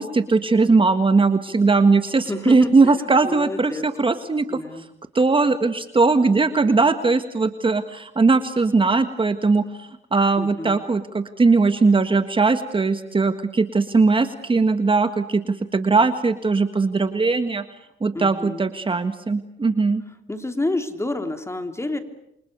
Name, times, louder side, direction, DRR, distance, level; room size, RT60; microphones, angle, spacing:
voice 1, 0.0-4.6 5.1-17.6 18.0-20.0, right 3 dB, 25° right, 9 dB, 1.7 m, -19 dB
voice 2, 2.3-3.9 4.5-4.9 10.4-10.8 18.1-18.7 20.3-22.0, left 2 dB, 15° left, 7 dB, 3.2 m, -29 dB
29.0 x 25.5 x 6.8 m, 0.79 s
cardioid pair, 90°, 20 cm